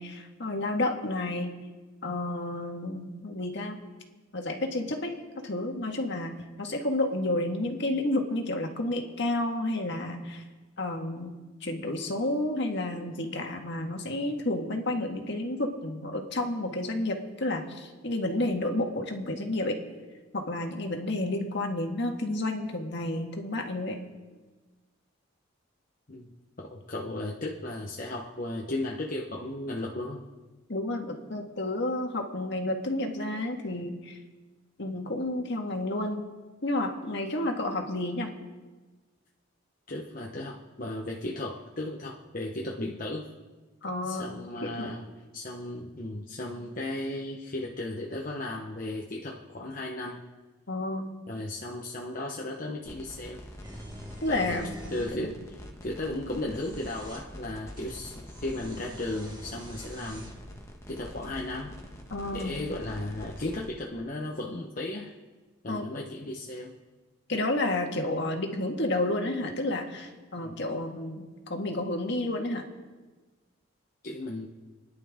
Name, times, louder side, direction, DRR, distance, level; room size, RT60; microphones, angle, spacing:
voice 1, 0.0-1.5 2.0-3.8 4.3-5.1 5.4-10.4 10.8-11.3 11.6-19.8 20.3-24.0 30.7-34.2 34.8-36.3 36.6-38.3 43.8-44.3 44.6-44.9 50.7-51.1 54.2-54.7 55.1-55.3 62.1-62.6 65.7-65.9 67.3-71.2 71.5-72.6, left 1 dB, 55° left, 3 dB, 1.9 m, -30 dB
voice 2, 26.6-30.2 39.9-43.3 44.0-45.1 45.3-50.2 51.3-53.4 54.3-54.6 54.9-55.3 55.8-60.3 60.9-61.8 62.3-65.1 65.6-66.8 70.4-70.6 74.0-74.5, left 1 dB, 40° left, -1 dB, 1.1 m, -35 dB
sound 1, 52.9-63.7, equal, 15° left, 1.4 m, -45 dB
sound 2, 53.6-55.2 56.4-57.3 57.8-60.4, equal, 20° right, 2.0 m, -47 dB
29.0 x 11.0 x 3.7 m, 1.3 s
head